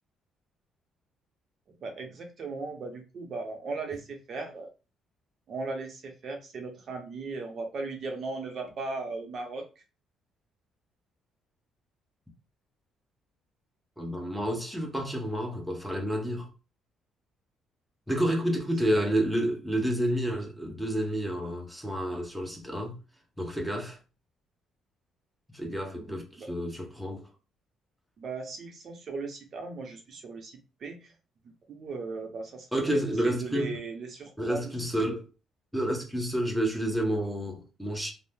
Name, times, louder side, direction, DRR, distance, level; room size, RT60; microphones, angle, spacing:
voice 1, 1.8-4.7 5.5-9.7 18.9-19.1 26.4-26.5 28.2-30.5 30.8-31.1 31.7-32.7 33.2-34.7, right 3 dB, 50° right, 0.7 m, -37 dB
voice 2, 14.0-16.5 18.1-23.0 23.4-24.0 25.5-27.2 32.7-33.8 34.4-35.2 35.7-38.1, right 1 dB, ahead, 0.8 m, -29 dB
2.7 x 2.0 x 3.4 m
cardioid pair, 115°, 0 cm